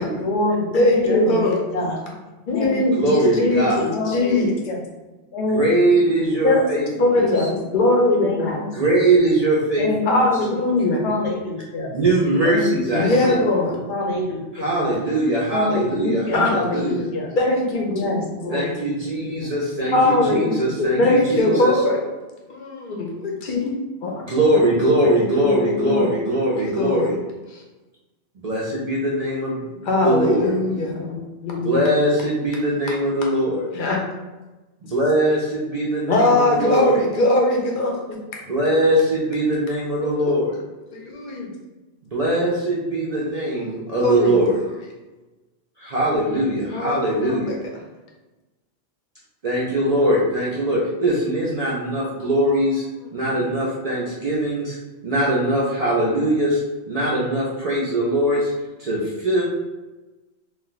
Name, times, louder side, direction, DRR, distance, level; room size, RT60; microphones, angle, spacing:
voice 1, 0.2-2.0 2.5-3.0 3.3-3.4 3.9-4.8 5.3-5.6 6.0-6.1 7.2-7.4 7.7-8.0 8.2-9.0 9.8-10.2 11.0-11.9 12.4-13.2 13.9-15.0 15.5-17.3 17.9-18.6 19.2-19.5 20.9-21.1, left 2 dB, 80° left, -1 dB, 1.0 m, -27 dB
voice 2, 0.7-1.6 2.5-4.5 6.2-6.6 7.0-8.6 10.1-11.0 12.9-13.8 16.3-16.5 17.4-18.1 19.9-22.0 22.5-23.8 24.0-24.2 25.0-25.1 25.4-26.1 26.6-27.1 29.8-31.8 33.7-34.0 36.1-38.2 40.0-40.2 40.9-41.5 43.6-44.4 46.7-47.5, left 2 dB, 55° left, -1 dB, 0.7 m, -21 dB
voice 3, 2.9-3.9 5.5-7.5 8.7-9.9 11.9-13.4 14.5-17.1 18.5-21.7 24.2-27.2 28.4-30.5 31.6-33.7 34.8-37.0 38.5-40.5 42.1-44.6 45.8-47.6 49.4-52.9 53.1-54.8 55.0-56.6 56.9-58.5 58.8-59.4, right 1 dB, 50° right, -5 dB, 0.5 m, -21 dB
2.5 x 2.2 x 3.8 m, 1.1 s
omnidirectional pair, 1.2 m